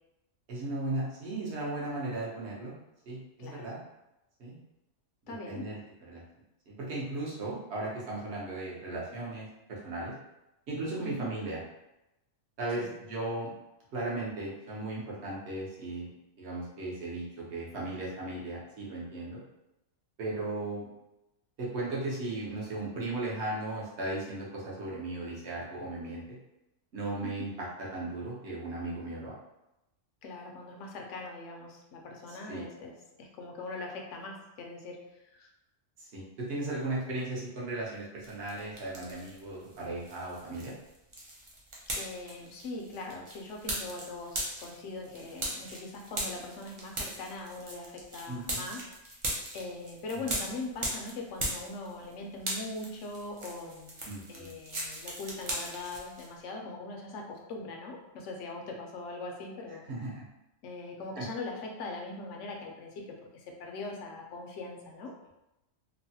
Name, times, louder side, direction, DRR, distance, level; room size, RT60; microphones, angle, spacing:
voice 1, 0.5-2.7 3.1-3.8 4.4-4.6 5.3-5.8 6.1-6.2 6.7-10.1 10.7-11.6 12.6-13.5 13.9-16.1 16.4-19.4 20.2-20.9 21.6-26.4 26.9-29.4 32.5-32.6 36.0-40.7 48.3-48.6 50.1-50.2 54.1-54.5 59.9-60.3 61.2-61.3, right 2 dB, 60° right, -5 dB, 1.1 m, -36 dB
voice 2, 5.3-5.7 11.0-11.3 12.8-13.0 30.2-35.5 41.9-48.8 49.5-53.9 54.3-59.8 60.6-65.1, left 2 dB, 75° left, 1 dB, 0.9 m, -41 dB
sound 1, 38.2-39.4 39.7-52.1 52.4-56.3, right 1 dB, 45° right, 0.4 m, -38 dB
3.0 x 2.1 x 2.7 m, 0.92 s
omnidirectional pair, 1.3 m